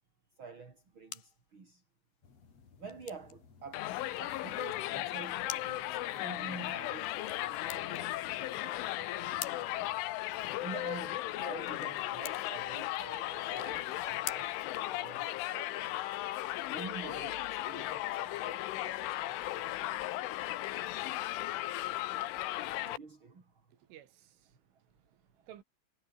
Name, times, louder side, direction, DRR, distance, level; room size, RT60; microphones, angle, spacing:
voice 1, 0.4-1.8 2.8-3.9 4.2-9.9 10.6-14.5 14.9-16.1 16.7-20.5 22.7-23.7, right 4 dB, 25° right, 4.3 m, -49 dB
sound 1, 0.6-15.6, left 11 dB, 60° left, 3.7 m, -50 dB
sound 2, 2.2-11.1, left 5 dB, 35° left, 4.2 m, -60 dB
Crowd, 3.7-23.0, left 16 dB, 80° left, 3.7 m, -36 dB
voice 2, 23.6-25.6, right 11 dB, 80° right, 4.8 m, -57 dB
omnidirectional pair, 5.5 m